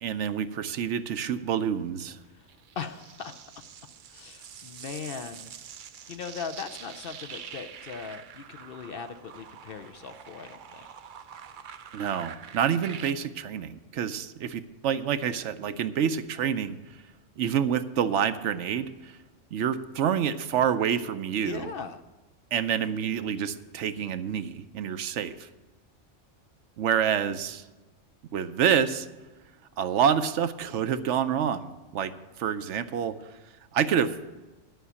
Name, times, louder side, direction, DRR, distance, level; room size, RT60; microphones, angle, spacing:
voice 1, 0.0-2.2 11.9-16.8 17.4-19.1 19.5-21.7 22.5-25.5 26.8-27.6 28.3-29.1 29.8-32.1 32.4-33.2 33.7-34.2, right 8 dB, 75° right, 11 dB, 0.9 m, -27 dB
sound 1, 2.5-13.1, right 8 dB, 55° right, 0.6 m, -45 dB
voice 2, 2.8-3.5 4.1-5.5 6.1-10.8 21.4-22.0, left 6 dB, 55° left, 8 dB, 0.7 m, -39 dB
11.5 x 6.1 x 8.2 m, 1.2 s
omnidirectional pair, 1.3 m